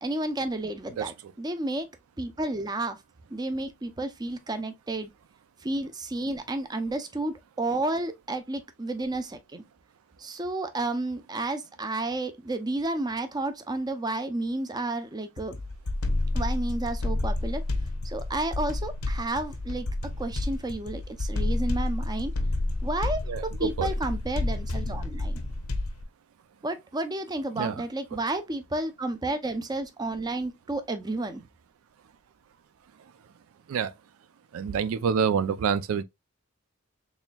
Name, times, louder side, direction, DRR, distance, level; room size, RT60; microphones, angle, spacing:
voice 1, 0.0-1.9 2.2-3.0 3.3-5.1 5.6-9.6 10.2-15.6 16.3-17.6 18.0-19.9 20.2-22.3 22.8-25.4 26.6-31.4, right 2 dB, 20° right, 0.5 m, -31 dB
voice 2, 1.0-1.3 23.3-23.9 27.5-27.8 28.1-28.2 33.7-33.9 34.5-36.0, right 6 dB, 75° right, 0.4 m, -27 dB
sound 1, 15.4-26.0, left 2 dB, 85° left, 0.8 m, -30 dB
4.2 x 3.5 x 2.2 m
head